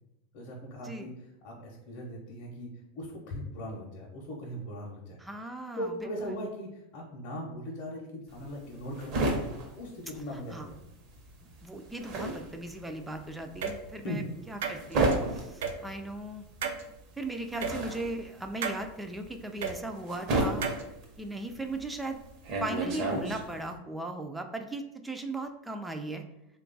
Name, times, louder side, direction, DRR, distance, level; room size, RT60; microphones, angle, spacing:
voice 1, 0.3-1.1 1.4-2.7 2.9-5.2 5.8-9.3 9.8-10.8 14.0-14.2, equal, 50° left, -2 dB, 0.6 m, -39 dB
voice 2, 5.2-5.9 6.2-6.3 10.5-10.7 11.6-16.5 17.2-20.7 21.2-22.2 22.6-26.2, right 2 dB, 10° right, 5 dB, 0.3 m, -37 dB
sound 1, 8.3-10.8 11.1-23.7, right 2 dB, 50° right, 0.8 m, -32 dB
sound 2, 13.6-13.7 14.6-15.1 15.6-15.7 16.6-16.8 17.6-17.7 18.6-18.8 19.6-19.7 20.6-20.8, right 6 dB, 75° right, 0.5 m, -32 dB
3.1 x 2.3 x 3.8 m, 0.89 s
supercardioid pair, 125°, 0 cm